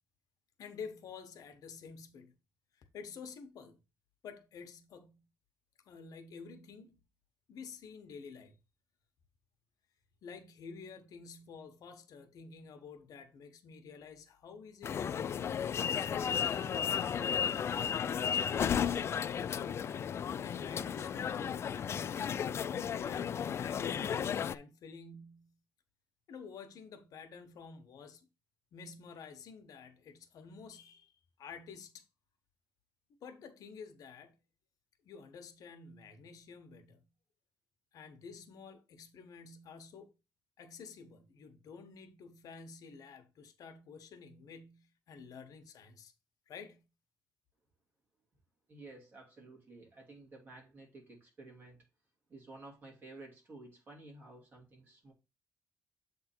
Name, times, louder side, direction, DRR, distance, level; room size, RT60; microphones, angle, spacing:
voice 1, 0.6-2.3 2.8-3.8 4.2-5.3 5.9-7.0 7.5-8.5 10.2-15.3 15.9-19.0 19.3-19.9 20.4-25.5 26.3-28.3 28.7-31.1 31.4-32.0 33.2-34.4 35.0-37.0 37.9-40.1 40.6-46.1 46.5-46.8, left 5 dB, 65° left, 1.1 m, -50 dB
sound 1, 14.8-24.5, left 8 dB, 40° left, 0.3 m, -34 dB
voice 2, 48.7-51.9 52.3-55.1, right 2 dB, 30° right, 2.5 m, -53 dB
7.9 x 3.6 x 4.4 m
cardioid pair, 145°, 7 cm